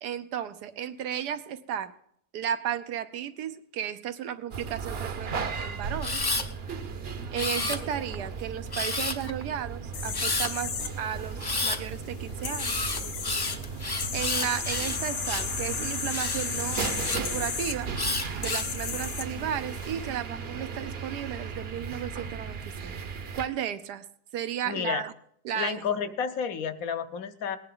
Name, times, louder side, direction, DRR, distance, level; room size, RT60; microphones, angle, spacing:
voice 1, 0.0-1.9 2.3-6.2 7.3-10.7 11.0-12.8 14.1-17.9 18.4-24.0 24.3-25.1 25.4-26.0, right 9 dB, 85° right, 11 dB, 1.4 m, -34 dB
sound 1, 4.5-23.5, right 5 dB, 50° right, 0.9 m, -36 dB
Camera, 6.0-6.5 7.3-8.1 8.7-9.3 10.1-10.5 11.4-11.8 12.6-15.5 16.1-17.2 18.0-18.7 19.4-19.9, left 3 dB, 30° left, 0.4 m, -31 dB
sound 2, 9.9-19.9, left 7 dB, 85° left, 1.6 m, -35 dB
voice 2, 24.7-25.0 25.5-27.6, left 7 dB, 65° left, 10 dB, 1.2 m, -31 dB
19.0 x 10.0 x 3.8 m, 0.66 s
omnidirectional pair, 1.7 m